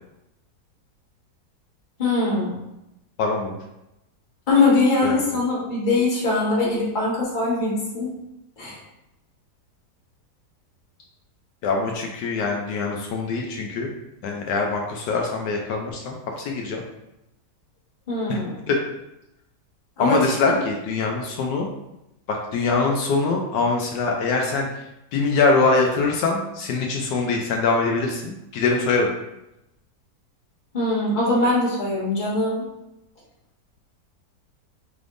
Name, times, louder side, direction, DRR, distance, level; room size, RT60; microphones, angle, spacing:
voice 1, 2.0-2.6 4.5-8.1 8.6-8.8 18.1-18.5 20.0-20.3 30.7-32.6, left 2 dB, 30° left, -6 dB, 1.3 m, -22 dB
voice 2, 3.2-3.6 5.0-5.2 11.6-13.9 14.2-16.8 18.3-18.4 18.7-18.8 20.0-21.7 22.3-24.7 25.1-29.1, left 3 dB, 80° left, 1 dB, 1.2 m, -23 dB
4.7 x 3.4 x 2.5 m, 0.90 s
omnidirectional pair, 1.8 m